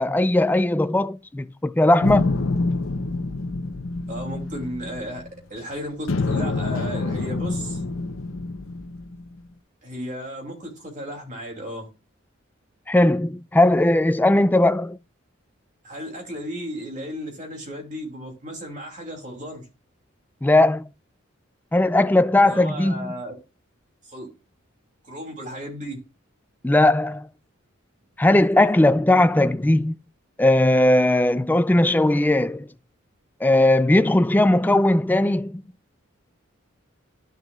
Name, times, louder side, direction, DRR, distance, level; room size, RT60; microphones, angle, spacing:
voice 1, 0.0-2.3 12.9-15.0 20.4-20.9 21.7-23.1 26.6-27.3 28.2-30.0 30.4-32.7 33.4-35.6, left 1 dB, 10° left, 0.3 m, -18 dB
sound 1, 2.0-5.6 6.1-9.4, left 3 dB, 80° left, 0.7 m, -27 dB
voice 2, 4.1-5.2 5.5-7.8 9.8-11.9 15.8-19.6 22.4-23.3 24.0-24.3 25.0-26.0, equal, 40° right, 2.8 m, -34 dB
11.5 x 6.7 x 2.4 m
head